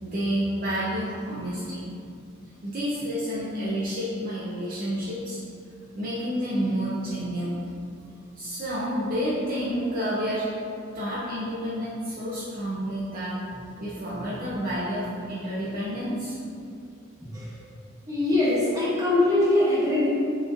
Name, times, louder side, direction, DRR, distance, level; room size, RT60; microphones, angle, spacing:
voice 1, 0.0-1.8 2.1-2.2 2.6-5.4 5.9-7.6 8.4-10.5 10.9-16.4, equal, 45° right, -8 dB, 0.6 m, -29 dB
voice 2, 17.2-17.6 18.1-20.1, left 2 dB, 15° right, -9 dB, 1.2 m, -22 dB
6.3 x 3.1 x 2.5 m, 2.5 s
head